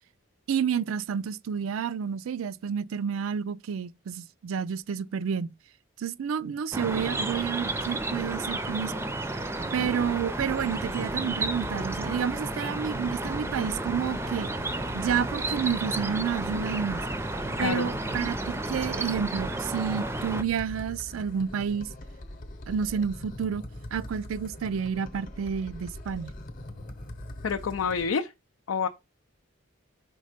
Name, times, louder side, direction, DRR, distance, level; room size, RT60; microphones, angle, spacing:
voice 1, 0.5-5.5 6.0-8.9 9.7-14.5 14.9-17.0 17.6-21.9 22.7-23.6 23.9-26.3, right 7 dB, 75° right, 0.4 m, -30 dB
sound 1, 6.7-20.4, right 2 dB, 10° right, 0.4 m, -32 dB
sound 2, 9.6-28.1, left 1 dB, 40° left, 0.8 m, -42 dB
voice 2, 27.4-28.3 28.7-28.9, left 5 dB, 85° left, 0.5 m, -28 dB
5.3 x 4.2 x 5.0 m
head